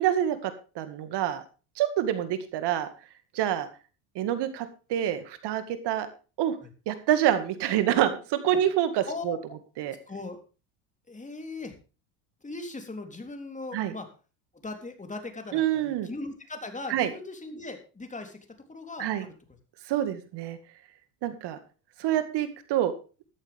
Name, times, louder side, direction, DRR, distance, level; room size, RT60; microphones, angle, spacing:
voice 1, 0.0-1.4 1.8-2.9 3.3-3.7 4.2-6.1 6.4-6.6 6.9-9.4 9.8-9.9 13.7-13.9 15.5-16.1 16.9-17.1 19.0-19.2 19.9-20.6 21.2-21.6 22.0-22.9, right 11 dB, 55° right, 11 dB, 2.1 m, -27 dB
voice 2, 9.1-9.4 10.1-10.4 11.1-11.8 12.4-14.1 14.6-18.4 18.7-19.3, left 3 dB, 15° left, 5 dB, 3.5 m, -39 dB
13.5 x 13.0 x 3.5 m, 0.34 s
hypercardioid pair, 85°, 47 cm